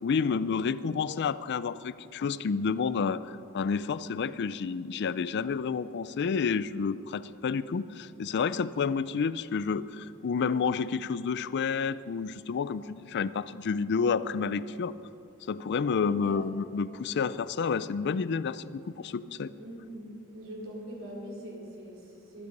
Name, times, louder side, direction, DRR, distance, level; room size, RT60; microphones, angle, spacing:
voice 1, 0.0-14.9 15.5-19.5, left 5 dB, 55° left, 16 dB, 0.4 m, -30 dB
voice 2, 16.0-16.4 19.6-20.1 20.3-22.5, right 1 dB, 65° right, -3 dB, 4.1 m, -42 dB
20.0 x 12.5 x 5.4 m, 2.8 s
head